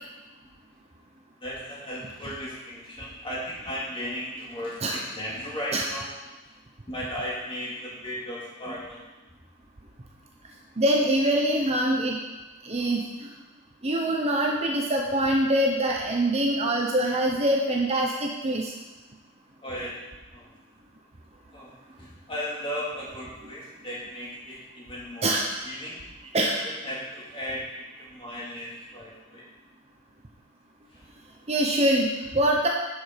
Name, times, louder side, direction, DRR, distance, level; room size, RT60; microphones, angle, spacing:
voice 1, 1.4-6.1 6.9-9.0 19.6-20.0 20.3-20.5 21.5-21.7 22.0-26.0 26.6-29.5 30.9-31.1, equal, 25° left, -5 dB, 2.3 m, -36 dB
voice 2, 10.8-12.2 12.6-13.3 13.8-18.7 25.2-25.4 26.3-26.6 31.5-32.7, right 1 dB, 30° right, 0 dB, 0.8 m, -24 dB
7.5 x 6.6 x 5.2 m, 1.1 s
head